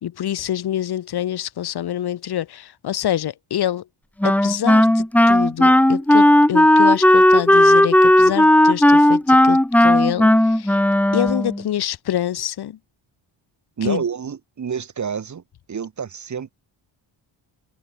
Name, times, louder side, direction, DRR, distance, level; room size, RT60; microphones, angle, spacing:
voice 1, 0.0-3.8 4.2-10.8 11.1-12.8 13.8-14.0, left 11 dB, 50° left, 1.1 m, -26 dB
Wind instrument woodwind instrument, 4.2-11.6, left 1 dB, 5° left, 0.8 m, -14 dB
voice 2, 13.8-15.4 15.7-16.5, right 7 dB, 35° right, 2.2 m, -28 dB
wide cardioid pair, 175°, 49 cm